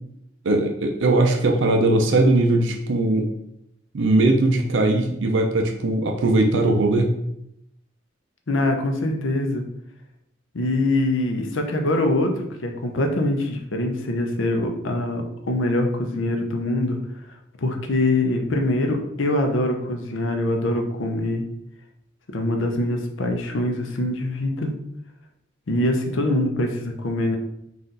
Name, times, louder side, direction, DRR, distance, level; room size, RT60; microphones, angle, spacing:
voice 1, 0.4-3.3 3.9-7.1, right 2 dB, 70° right, 3 dB, 0.5 m, -19 dB
voice 2, 8.5-9.6 10.5-17.0 17.6-21.4 22.3-24.7 25.7-27.4, left 1 dB, 75° left, 3 dB, 0.7 m, -23 dB
4.1 x 2.5 x 3.8 m, 0.77 s
head